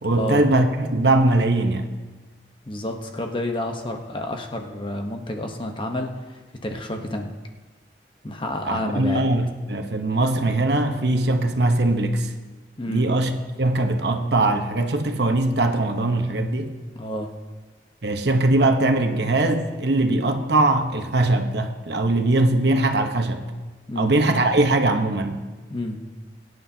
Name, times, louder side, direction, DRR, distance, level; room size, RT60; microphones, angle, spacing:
voice 1, 0.0-1.9 8.6-12.3 12.9-13.3 13.6-16.7 18.0-23.5 24.0-25.5, right 2 dB, 70° right, 1.0 m, -21 dB
voice 2, 2.7-7.3 8.2-9.2 12.8-13.1 16.9-17.3 23.9-24.1 25.7-26.0, left 1 dB, 30° left, 1.0 m, -29 dB
23.0 x 9.5 x 2.8 m
head